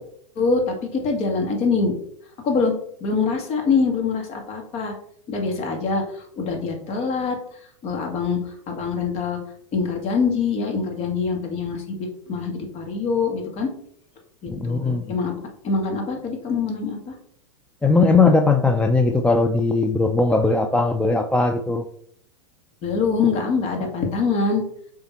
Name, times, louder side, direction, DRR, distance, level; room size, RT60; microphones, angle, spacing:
voice 1, 0.4-0.8 1.0-1.9 2.4-2.7 3.0-4.9 5.3-7.4 7.8-9.4 9.7-13.7 14.4-17.1 22.8-24.6, left 4 dB, 40° left, 2 dB, 2.0 m, -24 dB
voice 2, 14.6-15.0 17.8-21.8, left 3 dB, 5° left, 4 dB, 0.5 m, -19 dB
7.0 x 3.8 x 4.2 m, 0.66 s
hypercardioid pair, 110°, 17 cm